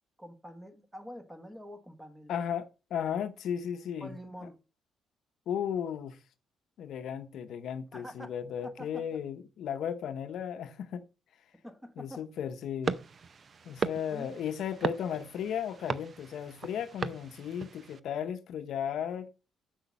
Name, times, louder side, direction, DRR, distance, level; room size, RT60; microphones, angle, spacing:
voice 1, 0.2-2.3 4.0-4.6 7.9-8.3 8.6-9.0 11.6-12.2 14.1-14.3 14.8-14.9, equal, 5° right, 1.4 m, -46 dB
voice 2, 2.3-4.1 5.5-6.2 6.8-11.0 12.0-13.0 13.6-19.3, left 8 dB, 75° left, 0.7 m, -35 dB
sound 1, 12.8-18.0, right 5 dB, 45° right, 0.5 m, -37 dB
6.4 x 6.0 x 5.2 m
cardioid pair, 90°, 0 cm